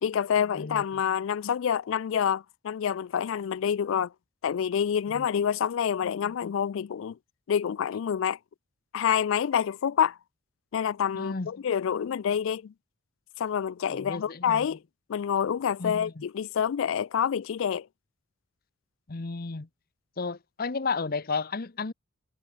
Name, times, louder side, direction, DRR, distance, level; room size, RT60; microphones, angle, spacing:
voice 1, 0.0-4.1 4.4-7.2 7.5-8.4 8.9-10.2 10.7-12.7 13.4-14.8 15.1-17.9, left 8 dB, 60° left, 0.3 m, -27 dB
voice 2, 11.1-11.5 13.9-14.7 15.8-16.2 19.1-19.7 20.2-21.9, left 4 dB, 45° left, 0.8 m, -33 dB
head